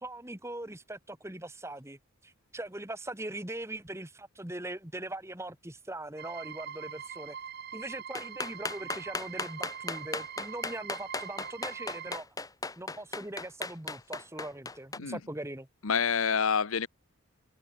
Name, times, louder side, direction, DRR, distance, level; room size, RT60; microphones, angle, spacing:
voice 1, 0.0-7.4 7.7-12.3 12.8-15.7, right 1 dB, 10° right, 1.6 m, -41 dB
sound 1, 6.2-12.2, right 8 dB, 45° right, 0.8 m, -43 dB
sound 2, 8.1-15.0, left 3 dB, 15° left, 1.6 m, -36 dB
voice 2, 15.8-16.9, left 6 dB, 75° left, 0.9 m, -27 dB
head